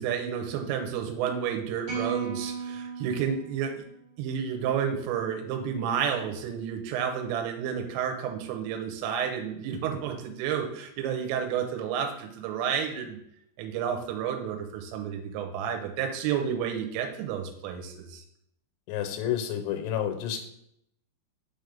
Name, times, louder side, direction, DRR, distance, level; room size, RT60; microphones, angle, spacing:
voice 1, 0.0-3.7 4.2-13.2 13.6-18.2, right 8 dB, 85° right, 4 dB, 3.3 m, -31 dB
sound 1, 1.8-4.2, right 5 dB, 40° right, 1.7 m, -36 dB
voice 2, 18.9-20.4, left 10 dB, 85° left, 5 dB, 3.2 m, -30 dB
6.3 x 5.1 x 3.4 m, 0.75 s
omnidirectional pair, 5.8 m